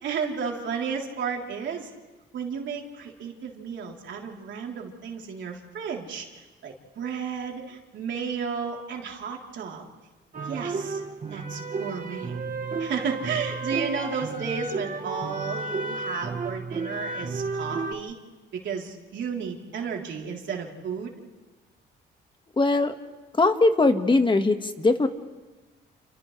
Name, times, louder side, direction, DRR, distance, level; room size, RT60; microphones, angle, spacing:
voice 1, 0.0-1.9 2.3-9.9 10.5-11.0 11.3-12.4 12.8-18.2 18.5-21.1, right 6 dB, 70° right, -1 dB, 3.6 m, -33 dB
sound 1, 10.3-17.9, right 3 dB, 40° right, 2.0 m, -32 dB
voice 2, 22.6-22.9 23.4-25.1, left 3 dB, 25° left, 7 dB, 1.7 m, -20 dB
29.5 x 29.5 x 3.3 m, 1.3 s
cardioid pair, 90°, 20 cm